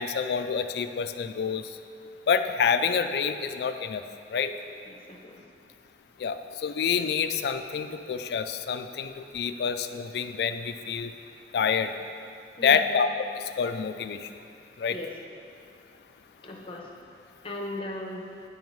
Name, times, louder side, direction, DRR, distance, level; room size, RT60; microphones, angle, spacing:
voice 1, 0.0-1.7 2.3-4.0 4.3-4.5 6.2-11.1 11.5-11.9 12.6-13.1 13.4-14.3 14.8-15.0, left 6 dB, 65° left, 9 dB, 0.3 m, -27 dB
voice 2, 4.9-5.4 12.6-12.9 14.9-15.1 16.4-17.0 17.4-18.2, left 1 dB, 30° left, 0 dB, 0.7 m, -38 dB
9.2 x 5.2 x 3.1 m, 2.4 s
head